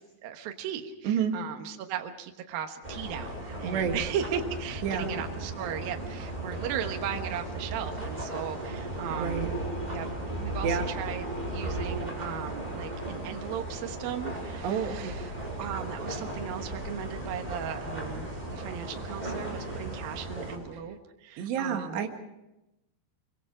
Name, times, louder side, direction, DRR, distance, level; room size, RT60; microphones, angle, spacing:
voice 1, 0.0-9.5 9.9-10.1 10.4-11.2 11.5-22.0, right 9 dB, 70° right, 4 dB, 2.9 m, -37 dB
sound 1, 2.8-20.6, right 1 dB, 10° right, 5.5 m, -36 dB
voice 2, 3.6-4.0 4.8-5.1 9.1-9.5 10.6-10.9 14.6-15.1 21.4-22.1, right 7 dB, 85° right, 4 dB, 3.9 m, -29 dB
25.0 x 24.0 x 4.9 m, 0.93 s
omnidirectional pair, 4.8 m